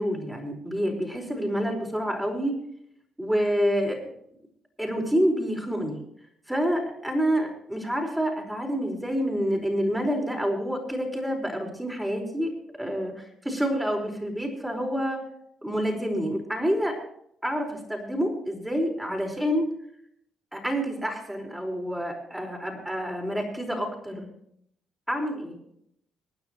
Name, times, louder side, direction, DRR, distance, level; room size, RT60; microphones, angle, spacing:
voice 1, 0.0-2.6 3.2-4.0 4.8-6.0 6.5-12.5 12.8-15.2 15.6-17.0 17.4-19.7 20.5-24.3 25.1-25.6, equal, 5° right, 1 dB, 4.9 m, -28 dB
26.0 x 9.6 x 3.1 m, 0.71 s
cardioid pair, 90°, 0 cm